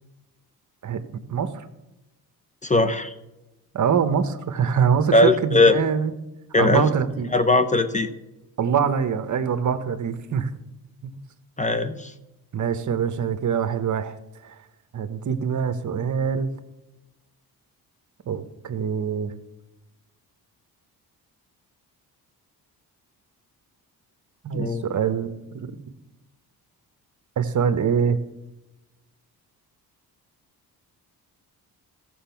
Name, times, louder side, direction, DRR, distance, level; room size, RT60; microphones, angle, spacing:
voice 1, 2.6-3.1 5.1-5.8 6.5-6.8 7.3-8.1 11.6-12.1 24.5-24.9, left 2 dB, 20° left, 10 dB, 0.7 m, -19 dB
voice 2, 3.7-6.1 6.6-7.3 8.6-10.5 11.0-11.2 12.5-14.1 14.4-14.5 14.9-16.5 18.3-19.3 24.4-25.3 25.6-25.8 27.4-28.2, right 7 dB, 50° right, 11 dB, 1.1 m, -24 dB
14.0 x 7.1 x 5.8 m, 0.97 s
cardioid pair, 100°, 39 cm